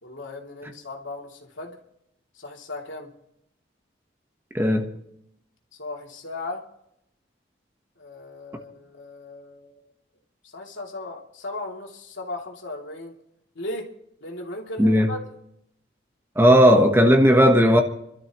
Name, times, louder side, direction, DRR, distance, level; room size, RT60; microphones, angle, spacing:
voice 1, 0.0-1.8 2.3-3.1 5.7-6.6 8.0-9.8 10.4-13.2 13.5-13.9 14.2-15.2, left 2 dB, 85° left, 2.8 m, -36 dB
voice 2, 4.5-4.9 14.8-15.1 16.3-17.8, equal, 10° right, 1.1 m, -15 dB
28.5 x 12.5 x 3.0 m
head